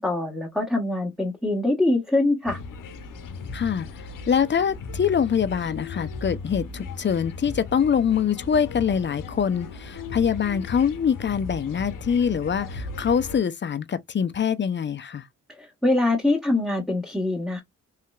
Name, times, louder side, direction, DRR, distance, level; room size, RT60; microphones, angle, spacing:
voice 1, 0.0-2.6 15.6-17.6, left 2 dB, ahead, 1.4 m, -24 dB
sound 1, 2.5-13.4, left 3 dB, 75° left, 0.8 m, -37 dB
voice 2, 3.5-3.9 4.3-15.3, left 7 dB, 35° left, 0.5 m, -24 dB
3.2 x 2.9 x 2.3 m
cardioid pair, 60°, 32 cm